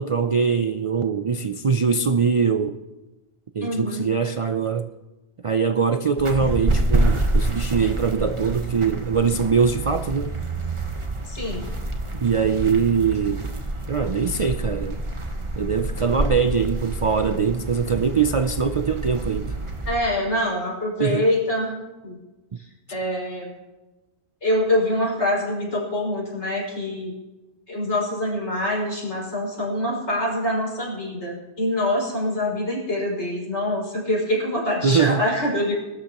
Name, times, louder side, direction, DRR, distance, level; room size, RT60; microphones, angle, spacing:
voice 1, 0.0-2.8 3.5-4.9 5.4-10.4 12.2-13.5 13.9-15.0 15.6-19.6 21.0-21.3 34.8-35.3, right 6 dB, 50° right, 0.4 m, -22 dB
voice 2, 3.6-4.1 11.3-11.7 19.9-21.7 22.0-22.2 22.9-23.5 24.4-27.1 27.7-35.7, left 1 dB, 80° left, 5.8 m, -25 dB
sound 1, 6.2-20.0, right 1 dB, 30° right, 1.2 m, -27 dB
22.0 x 13.0 x 3.0 m
omnidirectional pair, 1.2 m